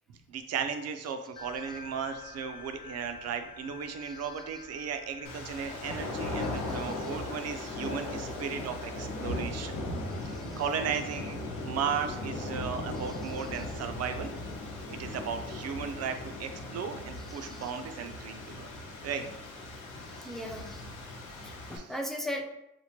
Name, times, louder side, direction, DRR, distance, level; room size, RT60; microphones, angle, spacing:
voice 1, 0.1-9.8 10.2-14.3 14.9-18.7 19.0-19.3 21.7-21.8, right 7 dB, 55° right, 8 dB, 0.5 m, -36 dB
sound 1, 1.4-12.2, left 5 dB, 60° left, 1.0 m, -51 dB
voice 2, 4.0-4.3 6.4-7.1 10.1-10.6 12.9-13.7 17.2-17.7 20.0-20.9 21.3-22.4, left 1 dB, ahead, 2 dB, 0.4 m, -41 dB
sound 2, 5.2-21.8, left 2 dB, 85° left, 0.8 m, -38 dB
4.3 x 2.1 x 2.9 m, 0.86 s
cardioid pair, 90°, 30 cm